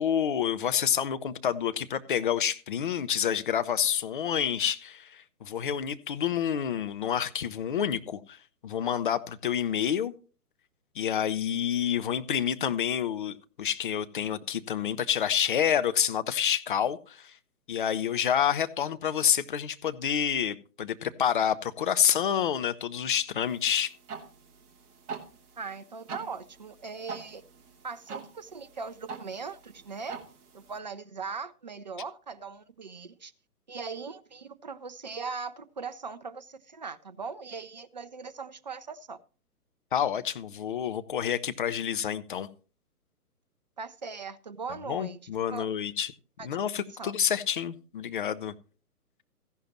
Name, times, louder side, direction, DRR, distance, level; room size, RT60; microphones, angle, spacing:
voice 1, 0.0-8.4 8.6-10.1 10.9-17.3 17.7-23.9 39.9-42.5 44.9-46.1 46.4-48.5, left 9 dB, 35° left, 0.7 m, -28 dB
sound 1, 23.5-30.8, right 5 dB, 15° right, 1.1 m, -45 dB
voice 2, 25.6-27.4 27.8-30.2 30.5-33.3 33.7-39.2 43.8-45.2 45.5-45.7 46.4-46.5 47.0-47.1, right 5 dB, 30° right, 0.4 m, -39 dB
15.0 x 11.0 x 3.0 m
figure-of-eight pair, 130°, 46 cm